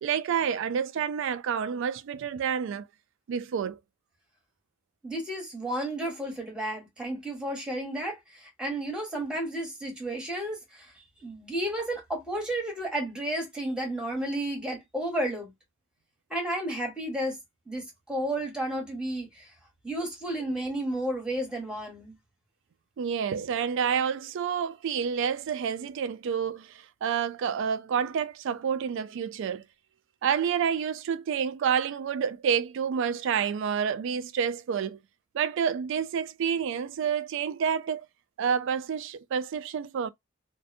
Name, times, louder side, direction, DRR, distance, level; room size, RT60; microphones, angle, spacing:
voice 1, 0.0-2.9 3.3-3.8 23.0-29.6 30.2-35.0 35.3-38.1 38.4-40.1, right 7 dB, 65° right, 0.3 m, -29 dB
voice 2, 5.0-10.9 11.2-15.5 16.3-17.4 17.7-19.5 19.8-22.1, right 1 dB, 5° right, 1.0 m, -32 dB
2.5 x 2.1 x 2.5 m
head